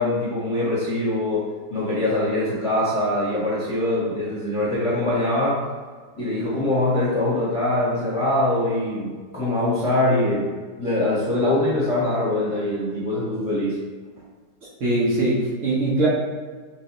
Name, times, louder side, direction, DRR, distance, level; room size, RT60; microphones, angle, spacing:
voice 1, 0.0-5.6 6.2-10.5 10.8-13.7, left 1 dB, 20° left, -9 dB, 1.0 m, -23 dB
voice 2, 14.8-16.1, right 2 dB, 55° right, -6 dB, 1.1 m, -21 dB
6.2 x 2.4 x 2.9 m, 1.5 s
omnidirectional pair, 1.8 m